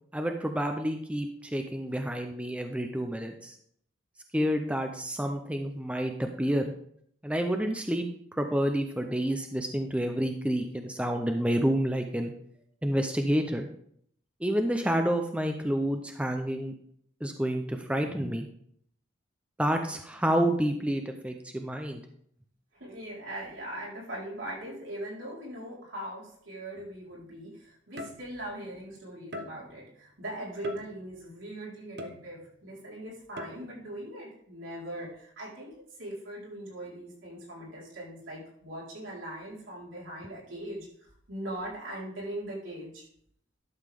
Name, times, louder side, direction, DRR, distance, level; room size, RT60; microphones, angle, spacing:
voice 1, 0.1-3.5 4.3-6.7 7.2-8.1 8.4-12.3 12.8-13.7 14.4-16.7 17.2-18.5 19.6-22.0, equal, 5° right, 5 dB, 0.6 m, -29 dB
voice 2, 22.8-35.7 36.0-43.1, right 1 dB, 80° right, -5 dB, 4.3 m, -40 dB
sound 1, 26.8-27.0 28.0-28.6 29.3-29.9 30.6-31.3 32.0-32.7 33.4-33.9, left 1 dB, 55° right, 0.9 m, -42 dB
11.5 x 7.2 x 3.6 m, 0.66 s
head